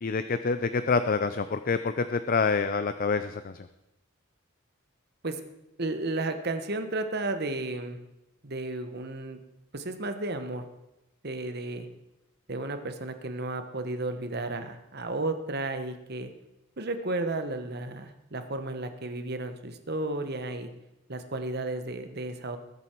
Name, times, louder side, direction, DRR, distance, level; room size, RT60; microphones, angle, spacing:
voice 1, 0.0-3.5, left 4 dB, 40° left, 11 dB, 0.5 m, -27 dB
voice 2, 5.8-8.0 8.4-9.4 9.7-10.6 11.2-11.9 12.5-16.3 16.8-20.7 21.1-22.6, right 2 dB, 50° right, 8 dB, 1.2 m, -33 dB
20.5 x 8.2 x 4.6 m, 0.92 s
head